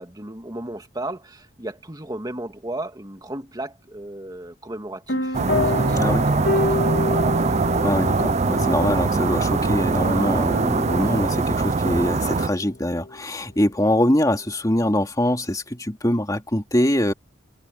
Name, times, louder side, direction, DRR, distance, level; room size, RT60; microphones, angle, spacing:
voice 1, 0.0-6.5 6.9-7.1 7.3-7.6, right 1 dB, 20° right, 2.2 m, -35 dB
sound 1, 5.1-13.2, left 2 dB, 65° left, 2.6 m, -29 dB
sound 2, 5.3-12.5, right 3 dB, 35° right, 0.5 m, -22 dB
voice 2, 5.9-6.2 7.8-17.1, left 1 dB, 20° left, 2.6 m, -23 dB
head